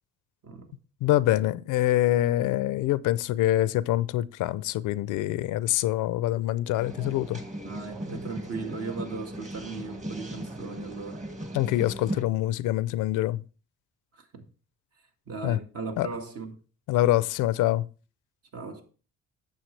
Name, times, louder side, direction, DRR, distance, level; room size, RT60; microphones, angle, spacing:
voice 1, 1.0-7.4 11.5-13.4 15.4-15.6 16.0-16.1 16.9-17.9, left 14 dB, 85° left, 0.5 m, -25 dB
sound 1, 6.8-12.2, right 1 dB, 25° right, 1.9 m, -38 dB
voice 2, 7.6-11.2 14.1-14.4 15.3-16.5 18.5-18.8, right 4 dB, 55° right, 1.8 m, -37 dB
9.0 x 7.1 x 3.2 m
cardioid pair, 90°, 30 cm